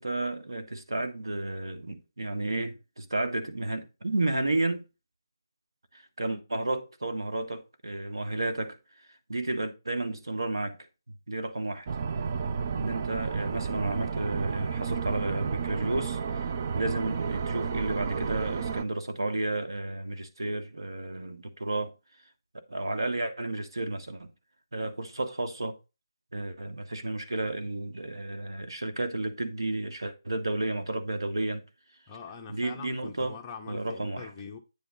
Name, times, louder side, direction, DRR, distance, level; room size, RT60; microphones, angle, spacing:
voice 1, 0.0-4.8 6.2-8.8 9.3-10.8 11.3-11.9 12.7-21.9 22.7-24.3 24.7-25.7 26.3-31.6 32.5-33.4 33.7-34.3, right 2 dB, 90° right, 1.7 m, -32 dB
sound 1, 11.9-18.8, right 6 dB, 35° right, 0.5 m, -31 dB
voice 2, 32.1-34.6, left 5 dB, 15° left, 1.0 m, -43 dB
9.1 x 3.8 x 5.3 m
figure-of-eight pair, 165°, 2 cm